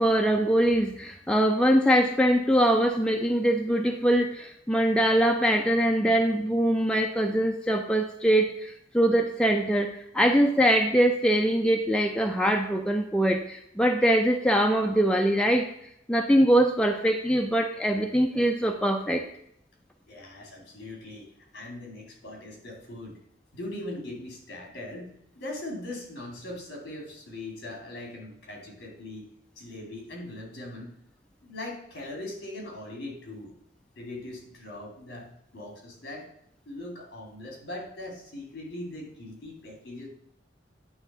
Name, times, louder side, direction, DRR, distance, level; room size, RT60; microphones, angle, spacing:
voice 1, 0.0-15.7 16.1-19.2, equal, 5° left, 3 dB, 0.5 m, -23 dB
voice 2, 20.1-23.2 23.5-29.3 29.6-30.9 31.4-33.5 34.0-35.3 35.5-36.3 36.6-40.1, left 1 dB, 60° left, 1 dB, 2.6 m, -40 dB
9.3 x 3.6 x 6.7 m, 0.73 s
head